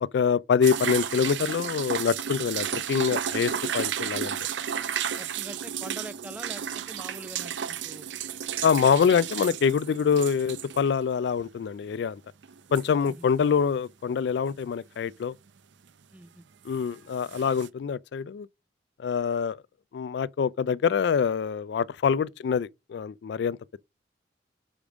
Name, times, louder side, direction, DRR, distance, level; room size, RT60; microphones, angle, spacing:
voice 1, 0.0-4.4 8.6-12.2 12.7-15.3 16.7-18.5 19.0-19.6 19.9-23.6, left 6 dB, 70° left, 0.3 m, -25 dB
sound 1, 0.6-10.9 11.2-11.3 12.4-13.3 16.8-16.9 17.2-17.7, right 8 dB, 85° right, 0.6 m, -33 dB
voice 2, 5.2-8.1 13.1-13.3 16.1-16.4 22.2-22.3, right 1 dB, 10° right, 0.4 m, -44 dB
5.1 x 5.0 x 6.1 m
head